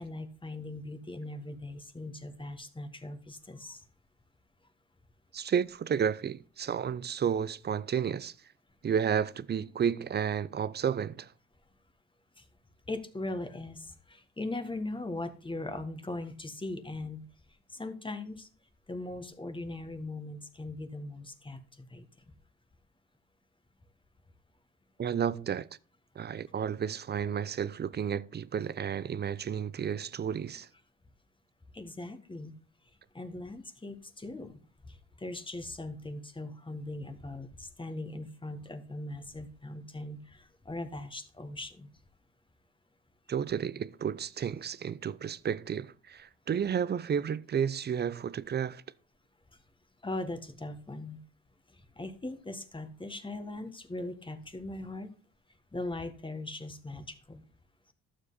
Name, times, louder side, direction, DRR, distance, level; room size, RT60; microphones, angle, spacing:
voice 1, 0.0-3.8 12.4-12.5 12.9-17.2 17.7-18.5 18.9-22.2 31.7-32.5 33.1-34.6 34.9-41.9 50.0-51.2 51.7-55.1 55.7-57.4, left 2 dB, 15° left, 1.5 m, -40 dB
voice 2, 5.3-8.3 8.8-11.3 25.0-25.7 26.2-30.7 43.3-48.8, right 8 dB, 35° right, 0.5 m, -32 dB
12.0 x 7.4 x 4.1 m
cardioid pair, 90°, 30 cm